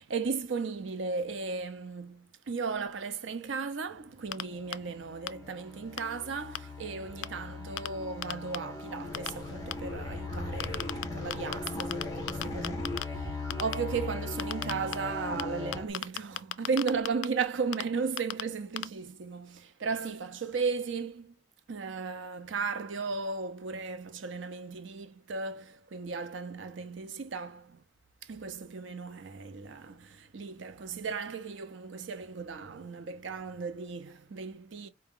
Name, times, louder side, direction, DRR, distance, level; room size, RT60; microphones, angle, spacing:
voice 1, 0.0-21.3 21.7-27.8 28.2-34.9, right 5 dB, 85° right, 0.6 m, -35 dB
sound 1, 4.3-4.4 4.7-4.8 5.3-5.4 6.0-6.1 6.5-6.6 7.2-7.3 7.8-7.9 8.2-8.6 9.1-9.3 9.7-9.8 10.6-11.0 11.3-12.0 12.3-13.0 13.5-13.7 14.4-14.9 15.4-15.5 15.7-17.2 17.7-17.8 18.2-18.4 18.8-18.9, left 11 dB, 85° left, 0.3 m, -32 dB
sound 2, 4.4-15.9, left 2 dB, 20° left, 1.2 m, -38 dB
4.7 x 2.2 x 3.7 m
head